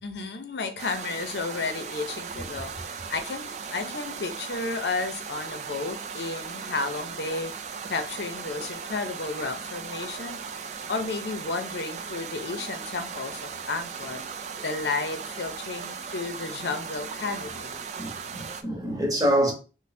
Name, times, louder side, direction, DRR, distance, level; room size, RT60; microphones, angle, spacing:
voice 1, 0.0-10.4 10.9-14.2 14.6-17.8, left 3 dB, 65° left, 0.6 m, -32 dB
sound 1, 0.8-18.6, right 6 dB, 40° right, 0.3 m, -37 dB
voice 2, 18.0-19.5, equal, 20° right, 0.9 m, -26 dB
3.2 x 2.1 x 4.2 m
head